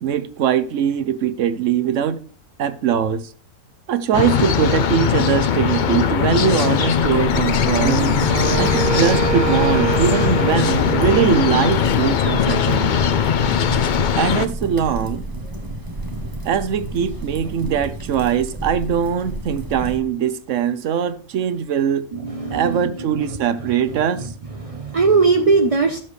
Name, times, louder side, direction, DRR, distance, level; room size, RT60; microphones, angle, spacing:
voice 1, 0.0-2.2 2.6-3.3 3.9-8.0 8.5-13.0 14.2-15.3 16.4-22.1 22.5-24.3, right 8 dB, 65° right, 1.0 m, -21 dB
sound 1, 4.1-14.5, left 8 dB, 75° left, 0.4 m, -19 dB
sound 2, 6.9-20.0, right 1 dB, 15° right, 0.9 m, -31 dB
Wind instrument woodwind instrument, 7.8-12.0, right 7 dB, 85° right, 1.4 m, -24 dB
voice 2, 22.1-22.6 24.6-26.0, right 4 dB, 40° right, 0.5 m, -18 dB
12.5 x 7.4 x 3.2 m
omnidirectional pair, 1.6 m